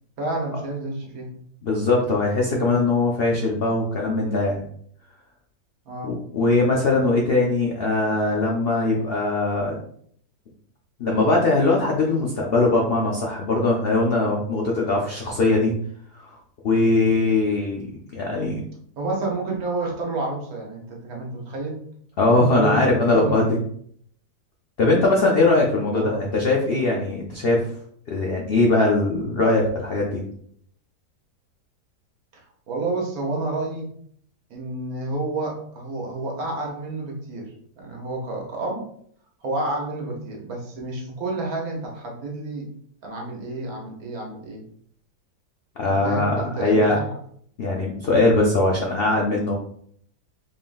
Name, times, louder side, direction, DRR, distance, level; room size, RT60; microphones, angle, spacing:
voice 1, 0.2-1.3 5.9-6.1 19.0-21.8 22.5-23.6 25.8-26.2 32.3-33.9 34.5-37.5 37.8-38.8 39.4-42.7 43.0-44.6 46.0-47.1, right 2 dB, 65° right, -1 dB, 1.4 m, -29 dB
voice 2, 1.6-4.6 6.0-9.7 11.0-15.7 16.2-16.3 16.6-17.8 18.1-18.6 22.2-23.5 24.8-27.7 28.1-30.2 45.8-47.0 47.6-49.6, left 2 dB, 90° left, -1 dB, 0.5 m, -21 dB
3.8 x 3.6 x 2.5 m, 0.64 s
omnidirectional pair, 1.8 m